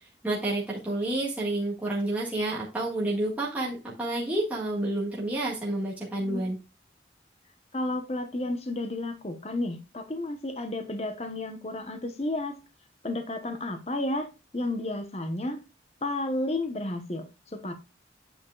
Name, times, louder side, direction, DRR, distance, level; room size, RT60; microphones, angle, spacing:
voice 1, 0.2-6.6, right 1 dB, 10° right, 1.6 m, -29 dB
voice 2, 7.7-12.6 13.0-14.3 14.5-15.6 16.0-17.7, left 2 dB, 35° left, 0.9 m, -32 dB
8.6 x 7.4 x 2.3 m
head